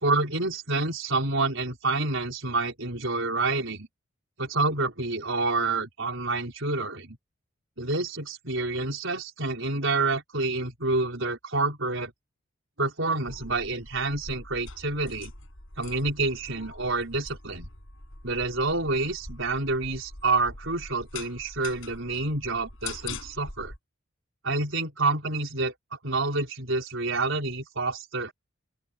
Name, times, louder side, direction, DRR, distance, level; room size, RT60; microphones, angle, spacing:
voice 1, 0.0-3.9 4.4-7.2 7.8-12.1 12.8-15.3 15.8-17.7 18.2-23.7 24.4-25.7 26.0-28.3, right 3 dB, 65° right, 4.6 m, -28 dB
sound 1, 13.3-23.8, left 3 dB, 70° left, 6.7 m, -43 dB
open air
head